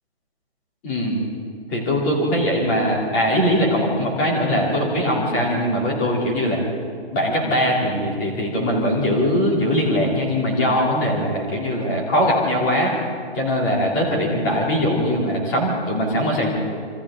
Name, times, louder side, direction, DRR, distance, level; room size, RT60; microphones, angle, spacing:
voice 1, 0.8-1.2 1.7-6.6 7.1-12.9 13.3-16.5, equal, 15° left, -3 dB, 3.0 m, -21 dB
28.0 x 25.0 x 3.8 m, 2.2 s
hypercardioid pair, 175°, 34 cm